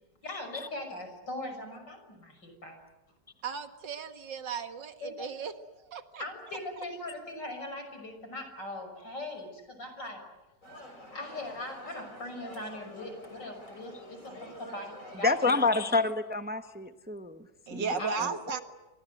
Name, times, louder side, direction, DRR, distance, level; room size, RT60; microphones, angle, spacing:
voice 1, 0.2-2.8 5.0-5.3 6.2-10.3 11.1-16.0 18.0-18.2, left 1 dB, 85° left, 6 dB, 6.7 m, -40 dB
voice 2, 3.4-5.5 5.9-6.2 14.3-14.5 17.7-18.6, right 5 dB, 90° right, 8 dB, 2.4 m, -35 dB
sound 1, 10.6-15.8, left 1 dB, 45° left, 6.8 m, -48 dB
voice 3, 15.2-18.4, left 3 dB, 5° right, 8 dB, 1.0 m, -29 dB
29.5 x 24.0 x 7.9 m, 1.1 s
omnidirectional pair, 1.9 m